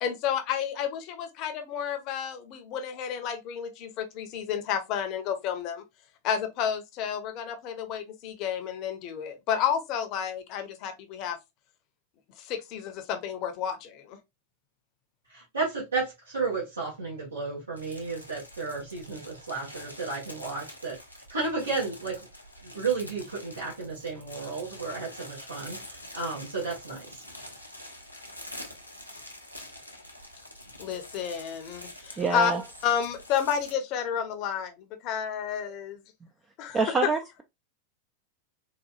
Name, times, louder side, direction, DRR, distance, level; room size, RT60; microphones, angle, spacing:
voice 1, 0.0-5.8 6.2-11.4 12.4-14.2 30.8-32.5 32.8-36.0 36.6-36.9, left 8 dB, 40° left, 0.7 m, -31 dB
voice 2, 15.3-21.0 21.3-22.2 22.6-27.2, right 4 dB, 75° right, 1.4 m, -33 dB
sound 1, 17.8-33.7, left 1 dB, 90° left, 0.8 m, -46 dB
voice 3, 32.2-32.6 36.7-37.4, right 4 dB, 20° right, 0.4 m, -26 dB
4.0 x 2.5 x 2.4 m
figure-of-eight pair, 90°, 0 cm